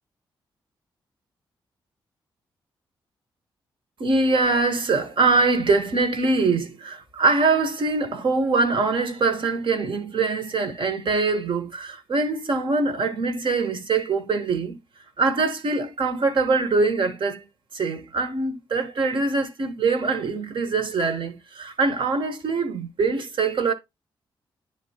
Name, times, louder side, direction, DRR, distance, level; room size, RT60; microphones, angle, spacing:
voice 1, 4.0-14.8 15.2-17.4 17.7-23.7, right 3 dB, 60° right, 1.1 m, -23 dB
10.0 x 3.4 x 2.8 m
cardioid pair, 55°, 10 cm